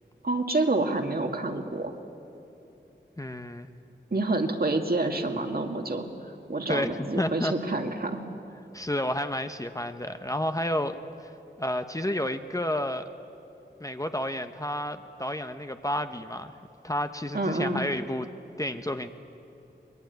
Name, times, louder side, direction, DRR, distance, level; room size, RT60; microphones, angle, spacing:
voice 1, 0.2-2.0 4.1-6.1 6.5-8.2 17.3-17.8, right 2 dB, 55° right, 4 dB, 2.1 m, -28 dB
voice 2, 3.2-3.7 6.7-7.5 8.7-11.0 11.2-11.3 11.6-13.1 13.8-16.5 16.8-18.3 18.6-19.1, left 1 dB, 15° left, 8 dB, 0.9 m, -30 dB
23.5 x 21.0 x 9.4 m, 2.9 s
wide cardioid pair, 75°, 19 cm